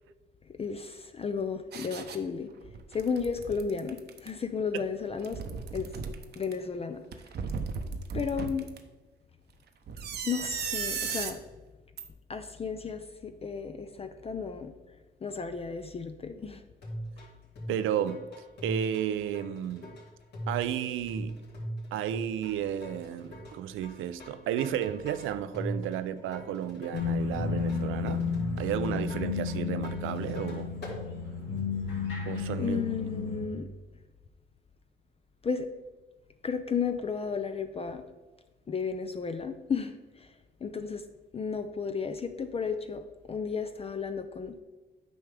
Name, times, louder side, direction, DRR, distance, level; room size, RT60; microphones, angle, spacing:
voice 1, 0.5-2.5 2.9-5.4 5.7-5.9 6.4-7.0 8.1-8.7 10.2-11.4 12.3-14.7 15.2-16.6 17.2-17.3 32.6-33.7 35.4-35.7 36.4-38.0 38.7-40.3 40.6-41.0 41.3-44.5, left 5 dB, 30° left, 0.5 m, -33 dB
sound 1, 1.7-2.2 2.6-4.3 5.1-6.5 7.1-8.8 9.9-11.3 12.0-12.1, right 5 dB, 55° right, 0.8 m, -36 dB
sound 2, 16.8-31.0, equal, 60° left, 2.5 m, -40 dB
voice 2, 17.7-18.3 18.6-20.0 20.5-21.4 21.9-28.3 28.6-30.7 32.3-32.8, right 10 dB, 85° right, 0.5 m, -33 dB
sound 3, 26.9-33.5, left 5 dB, 80° left, 2.2 m, -32 dB
9.1 x 5.7 x 3.4 m
cardioid pair, 90°, 20 cm